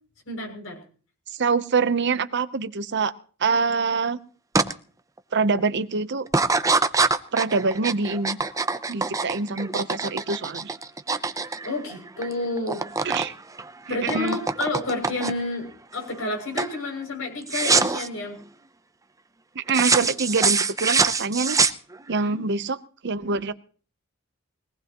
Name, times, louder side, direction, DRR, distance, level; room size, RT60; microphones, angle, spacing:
voice 1, 0.2-0.8 11.6-12.8 13.9-18.3 22.1-22.3, left 2 dB, 75° left, 2 dB, 6.7 m, -30 dB
voice 2, 1.3-3.1 3.4-4.2 5.3-6.3 7.3-8.4 8.9-10.7 13.0-13.3 13.9-14.4 19.5-21.6 22.1-23.5, right 4 dB, 55° right, 13 dB, 0.8 m, -25 dB
sound 1, 4.5-4.7 5.2-5.6 6.3-12.3 12.6-13.3 13.6-15.5 16.0-16.3 16.6-16.8 17.5-18.1 19.7-22.2, right 4 dB, 15° right, 0.7 m, -24 dB
22.0 x 18.0 x 3.0 m, 0.41 s
head